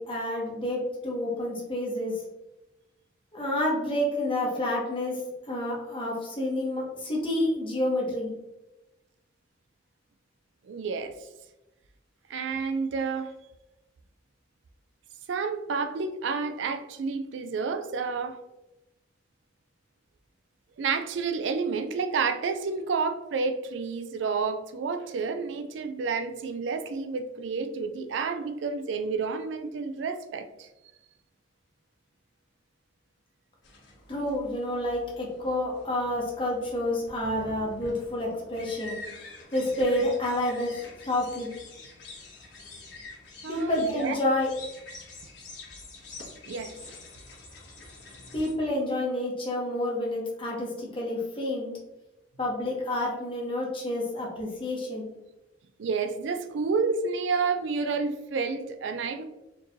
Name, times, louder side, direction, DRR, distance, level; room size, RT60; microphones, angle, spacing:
voice 1, 0.0-2.1 3.3-5.2 5.5-8.3 34.1-39.0 39.5-41.5 43.5-44.5 48.3-51.7 52.4-55.1, left 1 dB, 30° left, 1.0 m, -29 dB
voice 2, 10.6-11.2 12.3-13.3 15.3-18.4 20.8-30.7 43.4-44.2 46.5-46.7 55.8-59.2, right 4 dB, 75° right, 0.4 m, -30 dB
sound 1, 33.6-48.5, left 2 dB, 65° left, 1.5 m, -46 dB
4.3 x 3.1 x 2.7 m
head